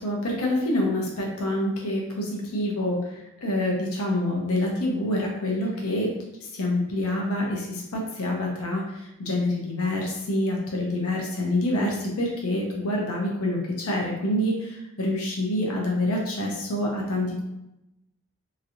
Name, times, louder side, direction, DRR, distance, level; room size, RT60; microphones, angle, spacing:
voice 1, 0.0-6.1 6.5-17.4, left 1 dB, 80° left, -1 dB, 0.8 m, -27 dB
3.0 x 2.7 x 2.8 m, 0.88 s
head